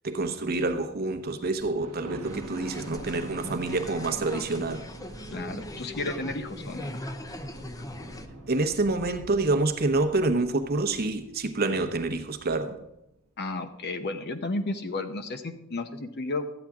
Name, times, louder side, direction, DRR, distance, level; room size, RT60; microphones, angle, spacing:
voice 1, 0.0-4.8 8.5-12.8, right 2 dB, 45° right, 0.9 m, -27 dB
Thunder, 1.6-11.3 11.9-12.0 12.4-12.5 12.7-12.8, right 3 dB, 85° right, 0.7 m, -46 dB
sound 1, 2.2-8.3, left 1 dB, 15° left, 0.6 m, -40 dB
voice 2, 5.3-6.9 13.4-16.5, left 2 dB, 50° left, 0.8 m, -33 dB
sound 2, 5.7-13.5, equal, 70° left, 4.9 m, -53 dB
13.0 x 8.9 x 3.6 m
head